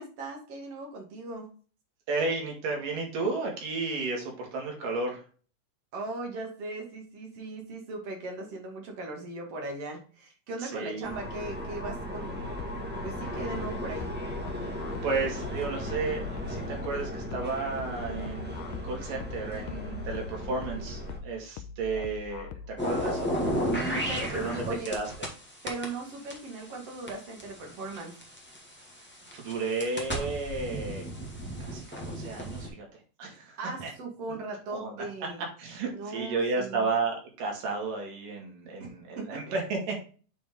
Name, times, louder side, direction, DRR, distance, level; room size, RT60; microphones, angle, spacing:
voice 1, 0.0-1.5 5.9-12.6 13.0-14.1 23.7-24.9 25.6-28.1 33.6-35.4 35.9-36.9 38.8-38.9 39.2-39.4, right 2 dB, 50° right, 2 dB, 2.8 m, -38 dB
voice 2, 2.1-5.2 10.6-11.1 14.6-23.3 24.3-25.1 29.3-31.1 31.6-33.9 34.3-34.4 34.7-35.1 35.6-40.0, right 3 dB, 90° right, 0 dB, 3.9 m, -33 dB
sound 1, 11.0-21.2, equal, 10° right, 0.5 m, -37 dB
sound 2, 12.4-23.4, left 5 dB, 85° left, 2.2 m, -43 dB
sound 3, 22.8-25.3 25.7-28.6 29.2-32.7, equal, 5° left, 1.0 m, -32 dB
8.1 x 4.7 x 3.7 m, 0.38 s
omnidirectional pair, 3.7 m